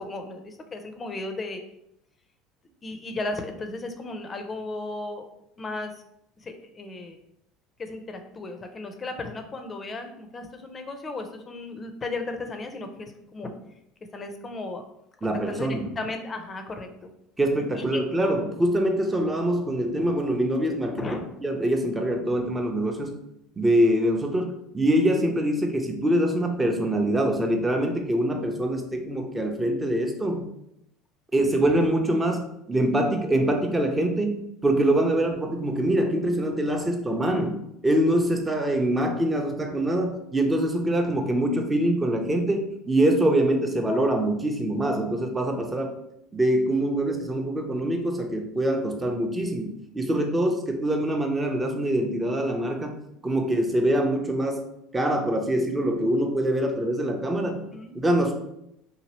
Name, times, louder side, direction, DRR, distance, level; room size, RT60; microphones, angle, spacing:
voice 1, 0.0-1.6 2.8-5.3 5.6-6.0 6.4-7.2 7.8-13.6 14.1-14.9 15.2-17.1 17.7-18.0 21.0-21.3 31.4-31.5 37.3-37.4 57.7-58.0, left 2 dB, 30° left, 6 dB, 0.5 m, -35 dB
voice 2, 15.2-15.9 17.4-21.1 21.4-23.2 23.6-30.5 31.3-37.5 37.8-45.9 46.3-54.6 54.9-57.6 57.9-58.3, right 1 dB, 15° right, 4 dB, 0.6 m, -24 dB
2.8 x 2.6 x 2.9 m, 0.80 s
hypercardioid pair, 70°, 0 cm